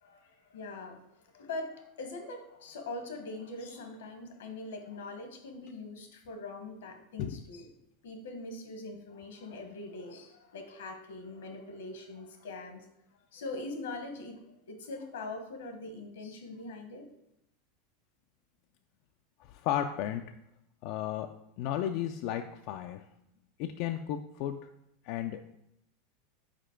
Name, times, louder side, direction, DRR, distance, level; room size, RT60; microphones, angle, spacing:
voice 1, 0.0-1.0 1.3-7.7 8.0-12.8 13.3-17.1, left 2 dB, 90° left, 5 dB, 1.1 m, -42 dB
voice 2, 19.5-20.2 20.8-21.3 21.6-23.0 23.6-24.6 25.1-25.6, left 10 dB, 55° left, 6 dB, 0.3 m, -33 dB
4.9 x 4.4 x 4.4 m, 0.81 s
supercardioid pair, 125°, 0 cm